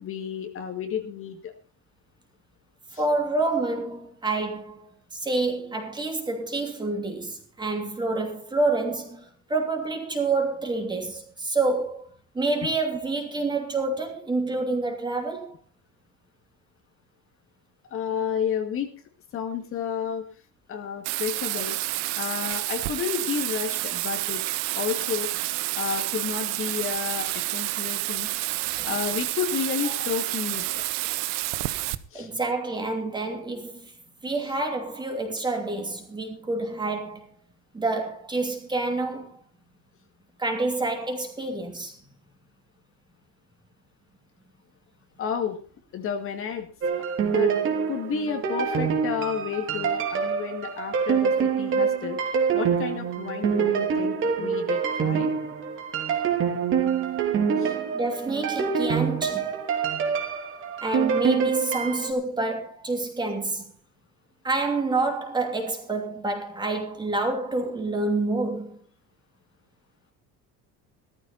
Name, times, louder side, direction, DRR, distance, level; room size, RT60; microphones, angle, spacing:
voice 1, 0.0-1.5 2.9-3.0 17.9-18.9 19.3-20.2 20.7-21.8 22.2-24.4 24.7-25.3 25.8-28.3 28.8-30.8 32.1-32.3 45.2-45.6 45.9-46.7 47.3-47.5 47.9-52.2 52.5-55.3 57.6-57.8, left 7 dB, 40° left, 2.0 m, -31 dB
voice 2, 2.9-12.1 12.3-15.5 28.8-28.9 32.1-33.9 34.2-37.3 37.7-39.4 40.4-42.0 57.9-59.5 60.8-63.6 64.4-68.8, right 3 dB, 15° right, 2.9 m, -28 dB
Bathtub (filling or washing), 21.0-31.9, right 19 dB, 75° right, 1.0 m, -29 dB
sound 1, 46.8-62.1, right 6 dB, 35° right, 3.0 m, -26 dB
16.0 x 14.0 x 4.1 m
cardioid pair, 165°, 34 cm